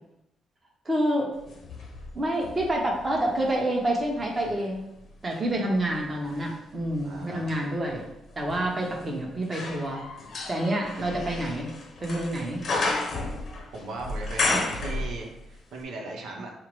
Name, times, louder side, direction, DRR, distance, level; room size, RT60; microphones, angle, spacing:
voice 1, 0.8-1.3 2.1-4.9 5.2-8.0 8.4-10.0 10.5-11.7 12.0-12.6 14.5-14.6, right 1 dB, 30° right, -1 dB, 1.0 m, -28 dB
sound 1, 1.4-3.6 4.2-15.5 15.8-15.9, left 2 dB, 55° left, 0.7 m, -34 dB
voice 2, 7.0-7.5 13.7-16.5, right 2 dB, 80° right, -1 dB, 0.7 m, -38 dB
5.7 x 2.0 x 3.0 m, 0.84 s
cardioid pair, 90°, 0 cm